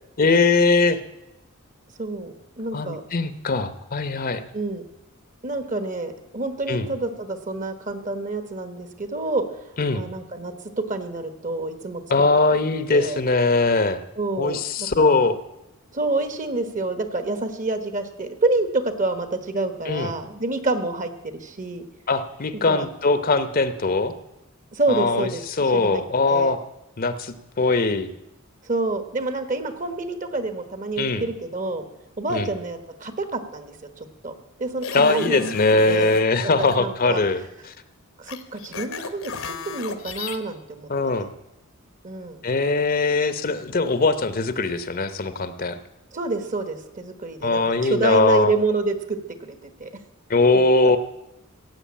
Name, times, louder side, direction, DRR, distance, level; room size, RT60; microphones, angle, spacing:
voice 1, 0.2-1.0 2.7-4.4 6.7-6.9 9.8-10.0 12.1-14.0 14.4-15.4 19.9-20.1 22.1-24.1 24.9-25.3 25.6-26.6 27.0-28.1 31.0-31.2 32.3-32.5 34.9-37.4 40.9-41.3 42.4-45.8 47.4-48.5 50.3-51.0, left 3 dB, 45° left, 11 dB, 0.8 m, -21 dB
voice 2, 2.0-3.0 4.5-4.8 5.4-9.4 9.9-12.0 12.9-13.2 14.2-15.1 15.9-21.8 22.7-22.9 24.7-25.4 25.7-26.0 26.3-26.5 28.6-31.8 32.2-36.1 36.6-37.2 38.2-40.9 41.2-41.3 42.0-42.4 46.1-49.9 50.5-50.6, right 2 dB, 40° right, 9 dB, 1.3 m, -28 dB
sound 1, 34.8-36.3 36.6-36.8 38.3-40.4, left 5 dB, 70° left, 1.1 m, -33 dB
15.5 x 7.9 x 8.6 m, 0.91 s
head